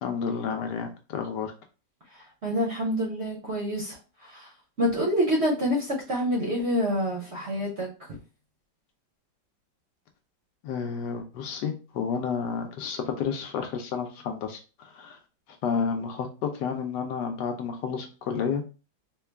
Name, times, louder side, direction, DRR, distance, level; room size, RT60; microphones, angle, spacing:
voice 1, 0.0-1.5 10.6-15.2 15.6-18.6, left 6 dB, 75° left, 4 dB, 1.1 m, -31 dB
voice 2, 2.1-4.5 4.8-7.9, equal, 50° right, -2 dB, 0.8 m, -27 dB
3.7 x 2.2 x 3.3 m, 0.33 s
omnidirectional pair, 2.0 m